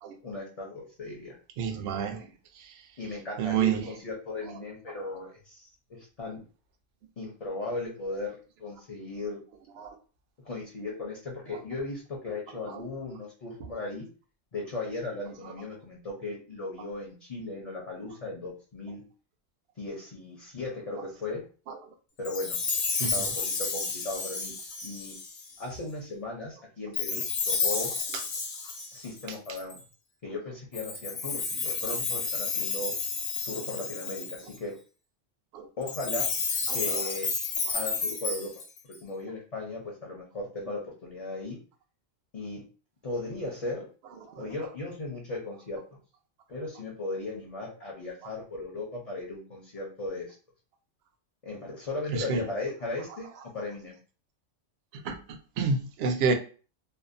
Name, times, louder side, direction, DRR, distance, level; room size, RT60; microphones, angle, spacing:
voice 1, 0.2-1.4 3.0-6.4 7.2-9.4 10.4-14.1 14.5-19.0 19.8-21.4 22.2-22.6 23.1-24.5 24.8-25.2 25.6-27.9 28.9-29.8 30.2-32.9 33.4-34.8 35.8-36.3 36.7-37.3 37.7-38.5 39.0-41.6 42.3-42.6 43.0-43.9 44.4-45.8 46.5-50.4 51.4-54.0, left 2 dB, 40° left, 0.6 m, -37 dB
voice 2, 1.6-2.2 3.4-3.8 9.8-9.9 23.0-23.2 35.5-35.7 36.9-37.0 44.3-44.5 52.1-52.4 55.0-56.3, right 5 dB, 65° right, 0.7 m, -28 dB
Chime, 22.2-25.6 26.9-29.8 30.7-34.6 35.8-39.0, left 4 dB, 90° left, 0.3 m, -31 dB
2.6 x 2.0 x 2.5 m
omnidirectional pair, 1.3 m